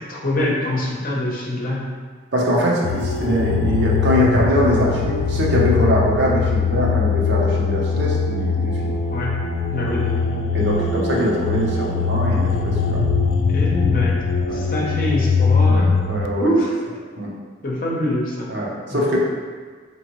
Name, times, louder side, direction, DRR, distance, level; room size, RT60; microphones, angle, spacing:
voice 1, 0.0-1.8 9.1-9.3 9.7-10.4 13.5-14.2 14.5-15.9 16.4-16.7 17.6-18.5 18.9-19.1, left 1 dB, 45° left, -4 dB, 0.7 m, -24 dB
voice 2, 2.3-8.9 10.5-13.0 14.5-14.6 15.6-16.5 17.2-17.3 18.5-19.2, equal, 70° right, -4 dB, 0.8 m, -22 dB
sound 1, 2.8-16.3, left 5 dB, 85° left, 0.3 m, -21 dB
4.3 x 3.0 x 3.0 m, 1.5 s
head